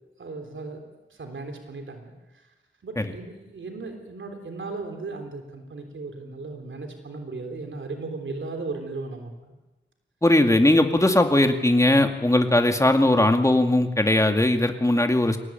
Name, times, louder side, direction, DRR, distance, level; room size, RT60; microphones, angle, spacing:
voice 1, 0.2-0.8 1.1-2.5 2.8-9.5, right 3 dB, 85° right, 4 dB, 3.5 m, -36 dB
voice 2, 10.2-15.4, left 1 dB, 15° left, 5 dB, 2.3 m, -19 dB
23.0 x 18.0 x 9.1 m, 1.1 s
wide cardioid pair, 70°, 19 cm